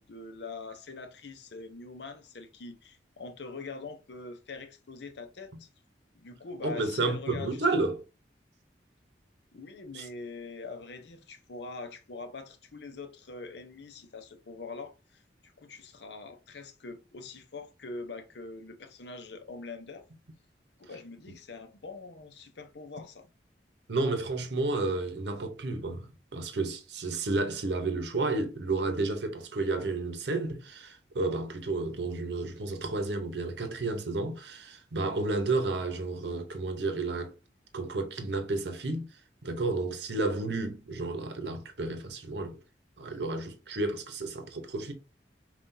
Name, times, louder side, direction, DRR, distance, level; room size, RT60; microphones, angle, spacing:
voice 1, 0.0-5.7 6.1-7.7 9.5-20.0 20.8-23.3, left 3 dB, 70° left, 0.7 m, -43 dB
voice 2, 6.6-8.0 9.9-10.1 23.9-37.3 37.7-39.1 39.4-42.6 43.0-44.9, right 3 dB, 70° right, 0.8 m, -31 dB
5.6 x 2.4 x 2.6 m
head